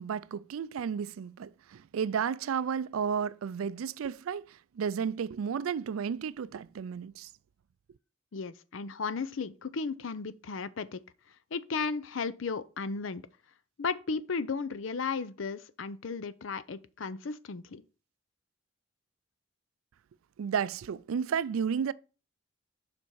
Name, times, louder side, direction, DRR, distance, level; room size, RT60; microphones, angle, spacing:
voice 1, 0.0-4.4 4.8-7.3 20.4-21.9, right 7 dB, 85° right, 0.4 m, -32 dB
voice 2, 8.3-11.0 11.5-13.2 13.8-17.8, left 4 dB, 70° left, 0.5 m, -35 dB
7.0 x 5.2 x 4.6 m
head